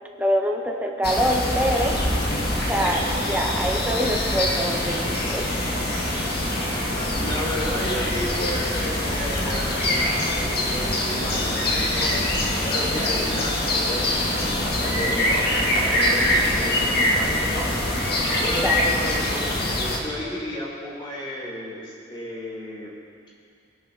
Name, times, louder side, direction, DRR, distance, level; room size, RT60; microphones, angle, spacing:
voice 1, 0.2-1.9 2.7-5.5 18.3-18.8, equal, 10° right, 1 dB, 1.3 m, -25 dB
sound 1, 1.0-20.0, left 1 dB, 60° left, 2.2 m, -24 dB
voice 2, 6.9-17.7 18.4-22.9, equal, 25° left, -5 dB, 4.5 m, -33 dB
23.0 x 11.0 x 4.2 m, 2.4 s
head